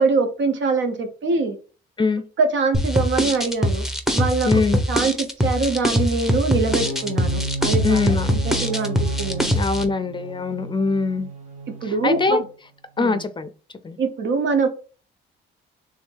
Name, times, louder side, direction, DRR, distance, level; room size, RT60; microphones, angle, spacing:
voice 1, 0.0-1.6 2.4-3.9 4.1-8.0 8.3-9.5 11.8-12.5 13.0-13.2 14.0-14.7, right 4 dB, 70° right, 7 dB, 1.0 m, -23 dB
sound 1, 2.7-9.8, equal, ahead, 0.8 m, -22 dB
voice 2, 4.4-4.8 7.8-8.3 9.5-11.3 11.8-12.4 13.0-13.5 13.8-14.0, left 4 dB, 25° left, 11 dB, 0.5 m, -22 dB
sound 2, 6.6-12.5, right 2 dB, 35° right, 1.1 m, -32 dB
3.6 x 2.7 x 4.6 m, 0.37 s
cardioid pair, 90°, 20 cm